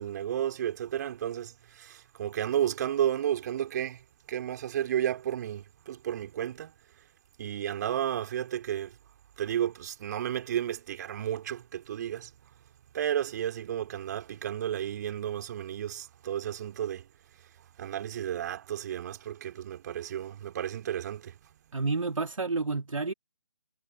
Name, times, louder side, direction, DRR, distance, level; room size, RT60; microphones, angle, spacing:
voice 1, 0.0-6.7 7.4-9.0 9.4-12.3 12.9-17.0 17.8-21.4, right 10 dB, 30° right, 3.8 m, -32 dB
voice 2, 21.7-23.1, right 3 dB, 65° right, 2.4 m, -30 dB
figure-of-eight pair, 145°, 18 cm